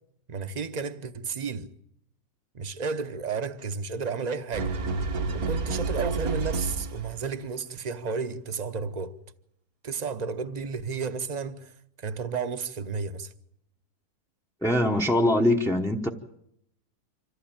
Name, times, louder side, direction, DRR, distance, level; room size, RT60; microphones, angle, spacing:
voice 1, 0.3-1.7 2.5-4.8 5.3-9.2 9.8-11.7 12.0-13.3, right 5 dB, 30° right, 0.9 m, -32 dB
sound 1, 4.5-7.3, right 3 dB, 65° right, 1.6 m, -29 dB
voice 2, 14.6-16.1, left 1 dB, 5° left, 0.7 m, -23 dB
26.0 x 15.0 x 8.8 m
omnidirectional pair, 1.7 m